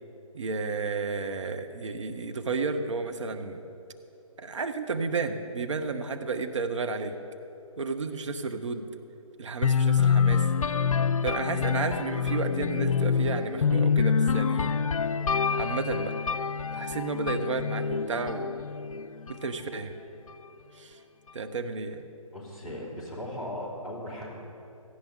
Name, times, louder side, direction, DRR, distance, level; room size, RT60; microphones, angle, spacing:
voice 1, 0.3-3.6 4.4-7.1 7.8-8.9 9.4-10.5 11.2-14.8 15.5-16.2 16.7-18.5 19.3-19.9 20.7-21.0 21.3-22.0, right 4 dB, 60° right, 7 dB, 1.1 m, -32 dB
sound 1, 9.6-19.4, left 6 dB, 70° left, 0.4 m, -26 dB
voice 2, 22.3-24.3, left 1 dB, ahead, -11 dB, 3.2 m, -37 dB
17.5 x 14.5 x 3.9 m, 2.9 s
figure-of-eight pair, 145°, 18 cm